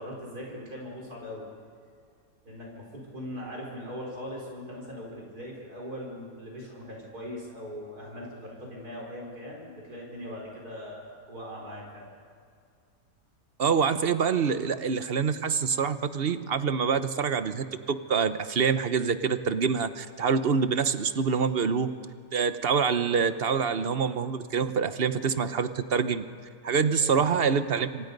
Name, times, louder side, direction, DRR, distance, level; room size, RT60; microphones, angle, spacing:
voice 1, 0.0-1.4 2.4-12.0 27.0-27.3, equal, 75° right, -2 dB, 5.2 m, -40 dB
voice 2, 13.6-21.9 22.3-26.2 26.6-28.1, right 6 dB, 45° right, 11 dB, 1.0 m, -26 dB
27.0 x 26.0 x 5.3 m, 2.2 s
omnidirectional pair, 1.6 m